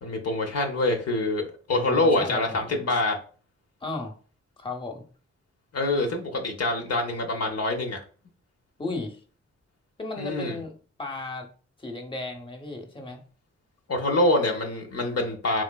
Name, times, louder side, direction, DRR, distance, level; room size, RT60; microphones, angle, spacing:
voice 1, 0.0-1.4 1.7-3.2 5.7-8.0 10.2-10.6 13.9-15.6, left 2 dB, 55° left, 2 dB, 0.7 m, -25 dB
voice 2, 1.7-2.8 3.8-4.2 4.6-5.0 8.8-9.2 10.0-10.7 11.0-11.5 11.8-13.2, left 2 dB, 15° left, 3 dB, 0.8 m, -34 dB
3.1 x 3.1 x 2.2 m, 0.39 s
supercardioid pair, 40°, 30 cm